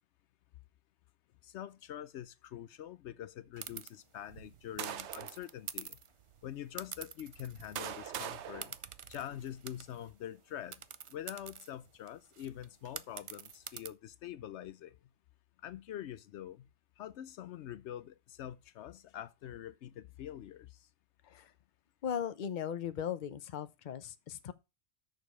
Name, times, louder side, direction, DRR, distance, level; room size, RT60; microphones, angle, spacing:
voice 1, 1.4-6.0 6.4-8.8 9.1-10.8 11.1-15.0 15.6-16.7 17.0-20.9, left 11 dB, 80° left, 0.9 m, -45 dB
sound 1, 3.6-3.9 4.8-6.1 6.8-7.8 8.1-8.2 8.6-10.1 10.7-13.9, right 7 dB, 50° right, 0.3 m, -46 dB
sound 2, 4.3-5.4 6.2-6.3 7.2-9.6, right 10 dB, 80° right, 1.0 m, -43 dB
voice 2, 22.0-24.5, left 8 dB, 45° left, 0.8 m, -38 dB
6.7 x 5.2 x 6.2 m
omnidirectional pair, 1.2 m